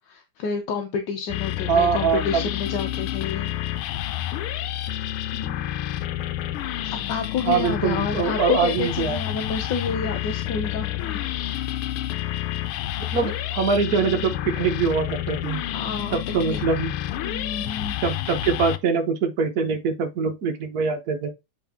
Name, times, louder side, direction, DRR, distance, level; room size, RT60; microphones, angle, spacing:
voice 1, 0.1-3.6 5.3-5.7 6.8-11.8 15.7-16.2 16.5-16.6 17.2-18.0, left 5 dB, 60° left, 1.4 m, -30 dB
sound 1, 1.3-18.8, left 13 dB, 90° left, 1.5 m, -29 dB
voice 2, 1.7-2.5 7.5-9.2 13.1-15.6 16.1-16.9 18.0-21.3, right 5 dB, 55° right, 1.2 m, -23 dB
7.9 x 3.7 x 3.5 m
omnidirectional pair, 2.3 m